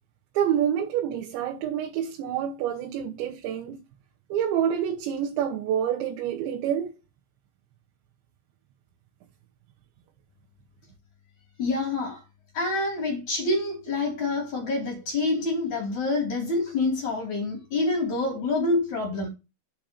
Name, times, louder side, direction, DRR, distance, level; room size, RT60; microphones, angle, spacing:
voice 1, 0.3-3.8 4.3-7.0, right 9 dB, 85° right, 3.4 m, -27 dB
voice 2, 11.6-12.2 12.5-19.3, left 2 dB, 50° left, 3.4 m, -27 dB
7.9 x 4.7 x 6.6 m
omnidirectional pair, 5.0 m